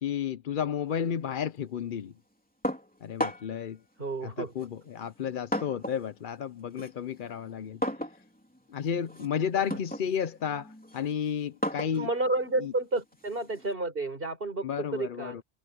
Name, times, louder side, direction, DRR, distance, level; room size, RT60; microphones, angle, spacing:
voice 1, 0.0-2.1 3.0-3.8 4.2-7.8 8.7-12.1 12.6-12.7 14.6-15.4, left 8 dB, 55° left, 0.8 m, -32 dB
sound 1, 2.6-3.7 4.6-6.1 6.4-13.7, equal, 10° left, 3.4 m, -36 dB
voice 2, 4.0-4.5 11.9-15.4, right 2 dB, 60° right, 4.6 m, -31 dB
omnidirectional pair, 1.1 m